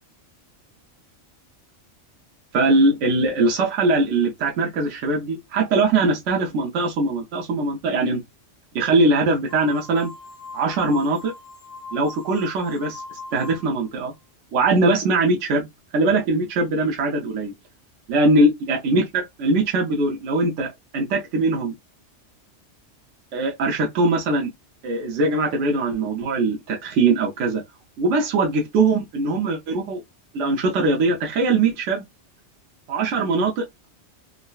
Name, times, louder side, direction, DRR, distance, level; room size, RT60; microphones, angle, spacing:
voice 1, 2.5-8.2 8.7-10.1 10.5-11.3 11.9-13.0 13.3-14.1 14.5-15.7 15.9-17.5 18.1-21.7 23.3-24.5 24.8-27.6 28.0-30.0 30.3-32.0 32.9-33.6, right 2 dB, 75° right, 1.0 m, -21 dB
sound 1, 9.5-13.9, left 3 dB, 30° left, 0.5 m, -40 dB
3.7 x 2.1 x 2.2 m
omnidirectional pair, 1.2 m